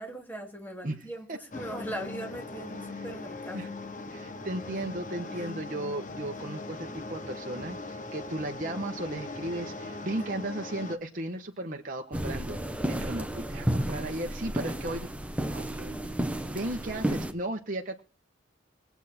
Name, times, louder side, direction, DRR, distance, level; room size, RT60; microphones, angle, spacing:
voice 1, 0.0-3.7 5.3-5.5, right 1 dB, 10° left, 3 dB, 2.5 m, -40 dB
sound 1, 1.5-11.0, left 2 dB, 40° left, 1.2 m, -40 dB
voice 2, 4.1-12.6 12.9-15.1 15.5-18.0, right 1 dB, 45° right, 3 dB, 1.1 m, -35 dB
sound 2, 12.1-17.3, right 1 dB, 5° right, 1.0 m, -32 dB
20.5 x 8.3 x 4.3 m, 0.38 s
head